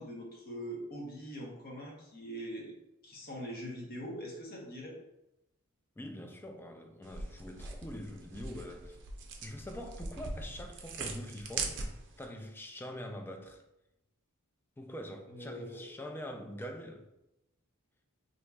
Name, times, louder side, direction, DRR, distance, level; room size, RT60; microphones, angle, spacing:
voice 1, 0.0-2.7 3.0-5.0 15.3-15.8, equal, 45° left, 0.9 m, -42 dB
voice 2, 6.0-9.0 9.4-13.6 14.8-17.1, equal, 10° left, 0.3 m, -44 dB
sound 1, 7.0-12.3, right 4 dB, 55° right, 0.5 m, -41 dB
4.5 x 2.7 x 2.3 m
head